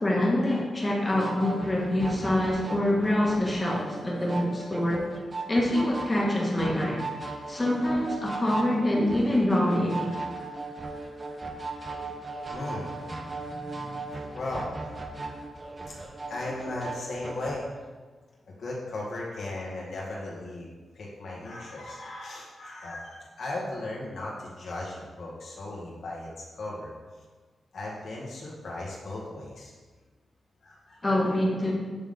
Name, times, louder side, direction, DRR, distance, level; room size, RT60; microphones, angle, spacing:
voice 1, 0.0-5.0 5.5-7.0 7.5-10.1 31.0-31.7, left 1 dB, 20° left, -3 dB, 1.6 m, -25 dB
sound 1, 1.1-17.6, right 3 dB, 30° right, 0.7 m, -38 dB
voice 2, 12.5-14.7 15.9-16.0 16.3-17.7 18.5-20.7 20.9-26.9 27.7-29.7 30.6-31.2, left 2 dB, 75° left, -5 dB, 1.9 m, -37 dB
8.6 x 3.6 x 3.7 m, 1.4 s
cardioid pair, 85°, 0 cm